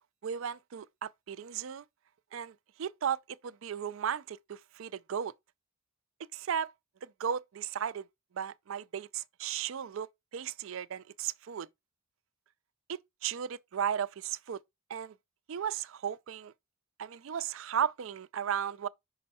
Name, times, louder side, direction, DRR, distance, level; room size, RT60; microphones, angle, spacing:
voice 1, 0.2-1.8 2.3-3.2 3.4-5.3 6.3-6.7 7.0-8.1 8.3-10.1 10.3-11.7 12.9-14.6 14.9-15.1 15.5-16.5 17.0-18.9, right 8 dB, 65° right, 0.4 m, -35 dB
5.5 x 5.3 x 4.1 m
head